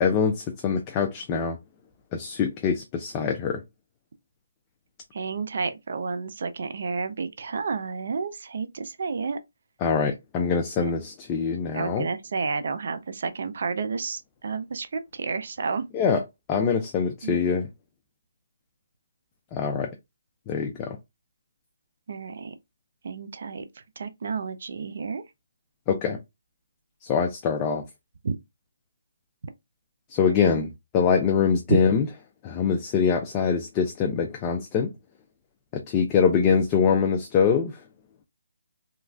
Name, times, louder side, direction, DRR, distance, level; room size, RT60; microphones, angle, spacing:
voice 1, 0.0-1.6 2.1-3.6 9.8-12.1 15.9-16.2 16.5-17.7 19.5-19.9 20.5-21.0 25.9-26.2 27.1-27.8 30.1-30.7 30.9-32.1 32.4-34.9 35.9-37.7, left 6 dB, 20° left, 0.4 m, -24 dB
voice 2, 5.1-9.4 10.8-10.9 11.7-15.8 17.2-17.4 22.1-22.5 23.0-23.6 24.0-25.2 28.2-28.3 30.3-30.6, right 5 dB, 55° right, 0.4 m, -31 dB
3.0 x 2.4 x 2.3 m
figure-of-eight pair, 155°, 0 cm